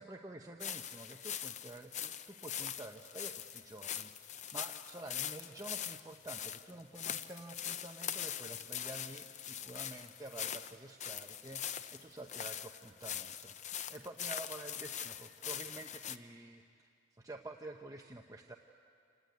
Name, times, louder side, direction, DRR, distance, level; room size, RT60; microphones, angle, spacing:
voice 1, 0.0-16.9 17.2-18.6, right 2 dB, 20° right, 2 dB, 0.8 m, -49 dB
sound 1, 0.6-16.2, left 9 dB, 40° left, 0.6 m, -42 dB
27.5 x 19.0 x 9.3 m, 2.4 s
head